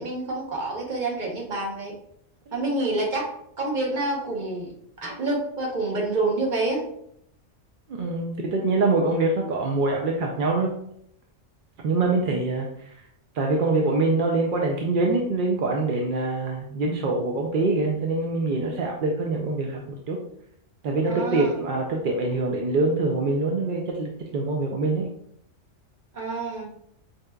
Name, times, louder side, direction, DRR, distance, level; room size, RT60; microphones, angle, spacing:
voice 1, 0.0-1.9 2.5-4.7 5.0-6.8 21.1-21.5 26.1-26.7, right 2 dB, 40° right, -2 dB, 1.0 m, -28 dB
voice 2, 7.9-10.7 11.8-12.9 13.3-20.2 20.8-25.1, right 3 dB, 60° right, 0 dB, 0.5 m, -24 dB
4.8 x 2.8 x 2.2 m, 0.71 s
omnidirectional pair, 1.3 m